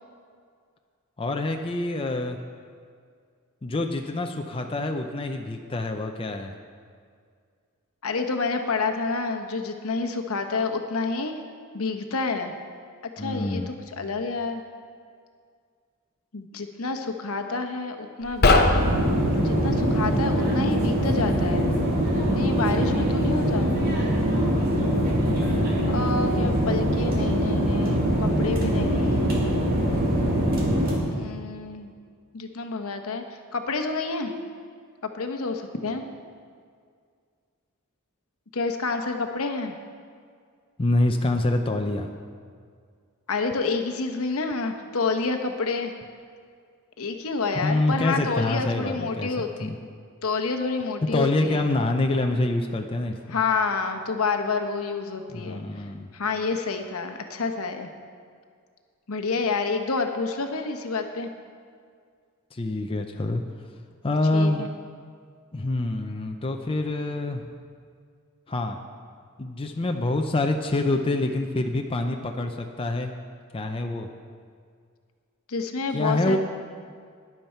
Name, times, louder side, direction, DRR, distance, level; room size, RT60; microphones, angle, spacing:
voice 1, 1.2-2.4 3.6-6.5 13.2-13.7 22.8-23.2 25.2-25.7 40.8-42.1 47.6-49.3 49.6-49.7 51.1-53.2 55.3-56.1 62.5-63.4 64.0-64.7 65.5-67.4 68.5-68.8 69.4-73.1 73.5-74.1 75.9-76.4, left 2 dB, 25° left, 4 dB, 0.5 m, -26 dB
voice 2, 8.0-11.4 11.7-12.5 13.2-14.6 16.3-18.9 19.4-21.7 22.3-23.7 25.9-29.4 31.1-31.9 32.3-34.3 35.0-36.0 38.5-39.7 43.3-45.9 47.0-49.7 50.2-51.7 53.3-55.6 56.1-57.9 59.1-61.3 64.3-64.7 75.5-76.4, left 4 dB, 70° left, 5 dB, 0.9 m, -29 dB
sound 1, 18.2-19.9, left 2 dB, 45° left, 0.9 m, -21 dB
sound 2, 18.7-31.0, equal, 45° right, 2.3 m, -23 dB
12.0 x 10.5 x 4.4 m, 2.1 s
head